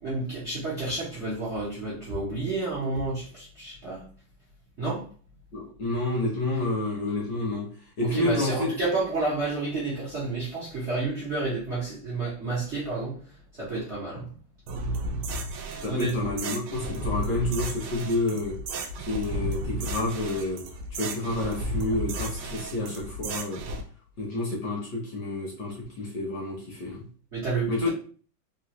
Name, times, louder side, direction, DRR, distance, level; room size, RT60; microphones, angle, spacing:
voice 1, 0.0-4.1 4.8-5.0 8.0-13.2 13.6-14.3 15.9-16.3 27.3-27.9, right 3 dB, 50° right, -6 dB, 0.9 m, -30 dB
voice 2, 5.5-7.7 8.0-8.7 15.8-18.6 19.1-20.6 20.9-23.6 24.2-27.1 27.7-27.9, left 2 dB, 60° left, -2 dB, 1.3 m, -29 dB
sound 1, 14.7-23.8, right 1 dB, 75° right, 1.1 m, -33 dB
3.8 x 2.4 x 2.9 m, 0.41 s
omnidirectional pair, 2.4 m